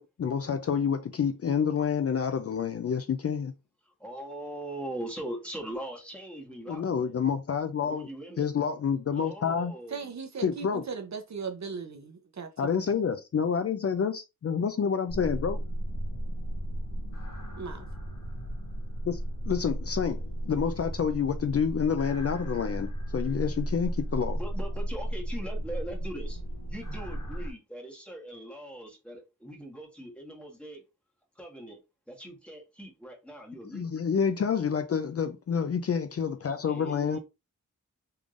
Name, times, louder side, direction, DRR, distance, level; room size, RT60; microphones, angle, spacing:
voice 1, 0.0-3.5 6.7-8.1 8.4-9.7 10.4-10.8 12.6-15.6 19.1-19.2 19.5-24.4 33.7-37.2, left 7 dB, 50° left, 0.4 m, -28 dB
voice 2, 4.0-7.2 7.8-8.5 9.1-10.0 24.3-26.4 26.7-30.8 31.3-31.8 32.1-33.9 36.6-37.2, right 1 dB, 5° left, 1.4 m, -41 dB
voice 3, 9.9-12.5 17.6-17.8, right 5 dB, 60° right, 0.7 m, -37 dB
sound 1, 15.1-27.5, right 1 dB, 85° left, 1.4 m, -34 dB
3.5 x 3.2 x 2.5 m
wide cardioid pair, 100°, 32 cm